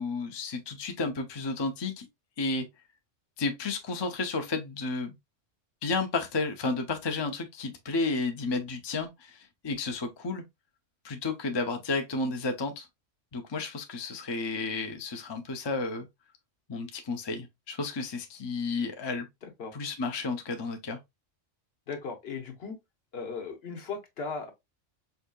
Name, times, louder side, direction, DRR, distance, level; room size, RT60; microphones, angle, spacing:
voice 1, 0.0-2.1 2.4-2.7 3.4-5.1 5.8-10.4 11.0-12.9 13.3-16.1 16.7-19.3 19.7-21.0, left 3 dB, 35° left, 0.4 m, -32 dB
voice 2, 19.4-19.7 21.9-22.8 23.1-24.5, left 4 dB, 55° left, 1.0 m, -37 dB
4.7 x 2.7 x 2.2 m
omnidirectional pair, 1.3 m